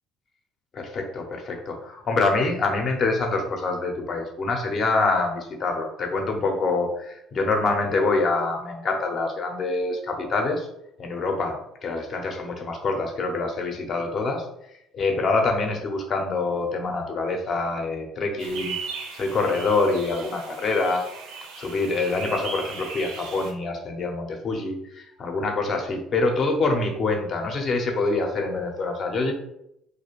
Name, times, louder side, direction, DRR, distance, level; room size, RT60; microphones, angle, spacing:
voice 1, 0.7-10.7 11.0-18.8 19.1-21.0 21.5-29.3, left 3 dB, 50° left, 3 dB, 0.6 m, -25 dB
sound 1, 18.4-23.5, right 5 dB, 80° right, 0.5 m, -37 dB
2.4 x 2.2 x 3.0 m, 0.78 s
supercardioid pair, 70°, 0 cm